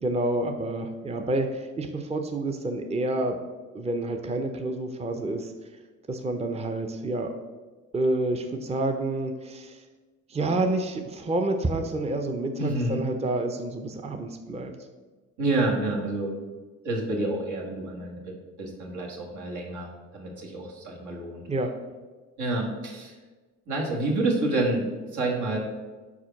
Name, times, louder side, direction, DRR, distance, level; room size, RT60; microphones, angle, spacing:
voice 1, 0.0-3.4 3.7-5.5 6.1-7.3 7.9-9.8 10.3-14.7 21.5-21.7, right 2 dB, 20° right, 5 dB, 0.6 m, -28 dB
voice 2, 12.6-13.0 15.4-16.5 16.8-18.3 18.6-21.4 22.4-23.2 23.7-25.6, right 2 dB, 80° right, -1 dB, 1.7 m, -28 dB
4.9 x 4.5 x 5.8 m, 1.3 s
cardioid pair, 90°, 30 cm